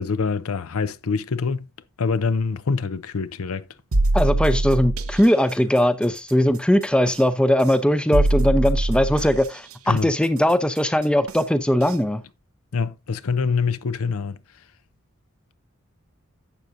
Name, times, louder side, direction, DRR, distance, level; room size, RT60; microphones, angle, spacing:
voice 1, 0.0-1.7 2.0-3.7 9.9-10.1 12.7-14.4, left 5 dB, 85° left, 0.6 m, -25 dB
sound 1, 3.9-5.2 7.1-7.2 8.1-9.5 11.3-11.4 11.9-12.0, right 2 dB, 85° right, 0.9 m, -22 dB
voice 2, 4.1-12.2, equal, 5° left, 0.5 m, -20 dB
11.5 x 7.7 x 2.6 m
head